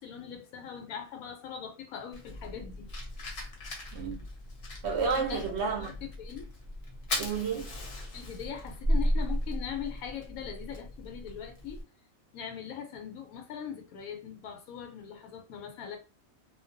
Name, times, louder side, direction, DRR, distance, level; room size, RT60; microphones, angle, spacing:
voice 1, 0.0-2.9 5.2-5.5 5.8-6.5 7.5-7.6 8.0-11.8 12.3-16.0, left 8 dB, 90° left, 1.1 m, -41 dB
Fire, 2.1-11.8, equal, 50° left, 0.8 m, -35 dB
voice 2, 3.9-4.3 4.8-6.1 7.2-7.7, right 5 dB, 65° right, 0.7 m, -31 dB
2.4 x 2.2 x 2.5 m
omnidirectional pair, 1.4 m